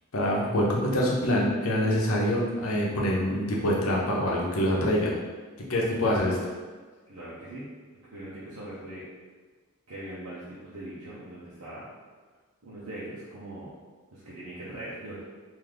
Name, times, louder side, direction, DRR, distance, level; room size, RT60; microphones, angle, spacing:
voice 1, 0.1-5.1 5.6-6.5, equal, 70° left, -3 dB, 0.8 m, -25 dB
voice 2, 7.1-7.7 8.1-9.1 9.9-11.9 12.6-13.7 14.1-15.2, right 1 dB, 80° right, -10 dB, 0.9 m, -41 dB
3.2 x 2.7 x 3.8 m, 1.4 s
head